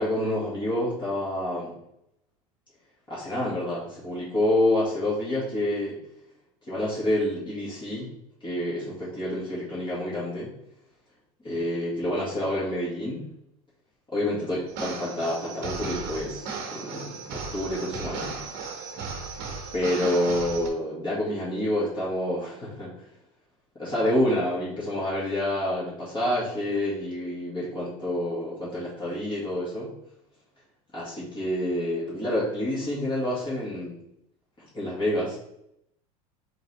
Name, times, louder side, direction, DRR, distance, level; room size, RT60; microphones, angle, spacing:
voice 1, 0.0-1.8 3.1-6.0 6.7-8.1 8.4-10.5 11.4-13.2 14.1-18.4 19.7-23.1 23.8-29.9 30.9-34.0 34.6-35.4, left 1 dB, 25° left, -8 dB, 1.7 m, -28 dB
sound 1, 14.7-20.7, right 5 dB, 60° right, 1.1 m, -36 dB
3.8 x 3.2 x 4.1 m, 0.77 s
hypercardioid pair, 100°, 19 cm